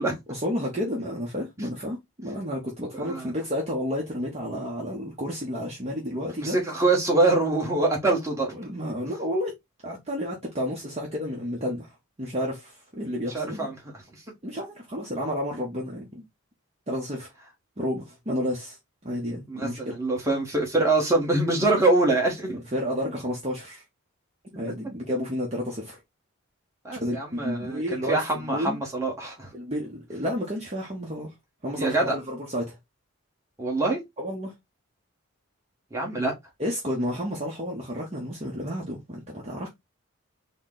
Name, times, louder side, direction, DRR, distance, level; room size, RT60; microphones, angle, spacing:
voice 1, 0.0-6.6 8.5-9.5 9.8-13.7 14.4-16.3 16.9-17.3 17.8-18.8 19.0-20.0 22.5-23.8 24.5-26.0 27.0-28.8 29.5-31.3 31.6-32.8 34.2-34.5 36.6-39.7, equal, 30° right, 0.8 m, -31 dB
voice 2, 6.4-8.5 13.3-13.7 19.5-22.6 26.8-29.5 31.8-32.1 33.6-34.0 35.9-36.3, right 2 dB, 15° right, 1.1 m, -24 dB
4.2 x 2.1 x 3.6 m
head